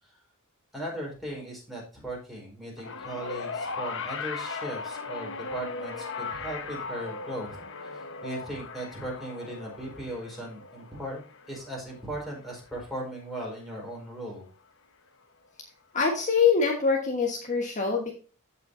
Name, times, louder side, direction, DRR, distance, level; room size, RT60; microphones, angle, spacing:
voice 1, 0.7-7.6 7.8-11.2 11.5-14.5, right 1 dB, ahead, -3 dB, 4.8 m, -38 dB
sound 1, 2.8-13.2 14.2-14.3, left 4 dB, 60° left, 1.1 m, -38 dB
voice 2, 15.9-18.1, left 5 dB, 35° left, 0 dB, 1.5 m, -24 dB
15.0 x 5.7 x 2.7 m, 0.36 s
head